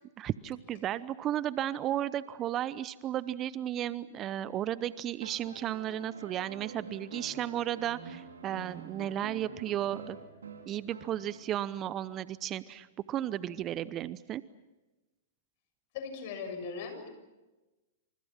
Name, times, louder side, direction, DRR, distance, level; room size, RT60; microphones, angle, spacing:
voice 1, 0.2-10.2 10.6-14.4, right 11 dB, 30° right, 17 dB, 0.8 m, -34 dB
sound 1, 5.2-11.6 13.1-13.2, right 4 dB, 80° right, 4.3 m, -46 dB
voice 2, 15.9-17.1, left 5 dB, 50° left, 7 dB, 7.0 m, -39 dB
28.5 x 27.0 x 5.9 m, 1.1 s
hypercardioid pair, 110°, 0 cm